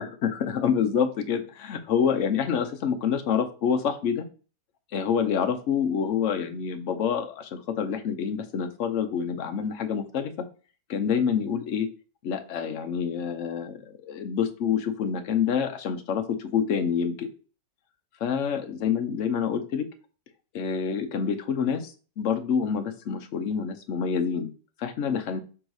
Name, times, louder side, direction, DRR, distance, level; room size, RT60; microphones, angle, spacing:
voice 1, 0.0-4.3 4.9-10.3 10.9-11.9 12.2-17.3 18.2-19.9 20.5-24.5 24.8-25.4, left 7 dB, 55° left, 7 dB, 0.9 m, -27 dB
6.3 x 3.9 x 4.8 m, 0.37 s
omnidirectional pair, 2.0 m